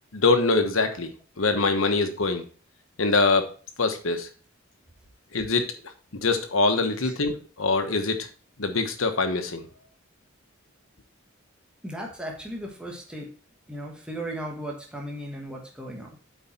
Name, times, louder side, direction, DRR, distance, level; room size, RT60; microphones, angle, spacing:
voice 1, 0.1-2.4 3.0-3.5 3.8-4.3 5.3-5.7 6.1-8.2 8.6-9.6, left 3 dB, 80° left, 7 dB, 1.2 m, -24 dB
voice 2, 11.8-13.3 13.7-16.2, right 1 dB, 5° right, -1 dB, 1.3 m, -36 dB
8.3 x 4.7 x 4.3 m, 0.38 s
head